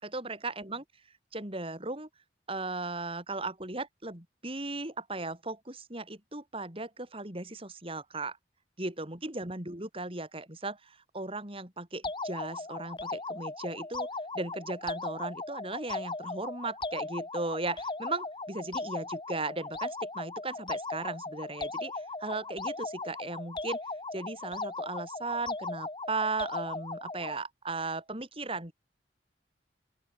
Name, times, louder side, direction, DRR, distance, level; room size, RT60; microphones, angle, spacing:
voice 1, 0.0-0.8 1.3-2.1 2.5-8.4 8.8-14.1 14.3-23.8 24.1-28.7, right 2 dB, 30° right, 4.8 m, -37 dB
sound 1, 12.0-27.4, left 3 dB, 25° left, 2.6 m, -38 dB
open air
head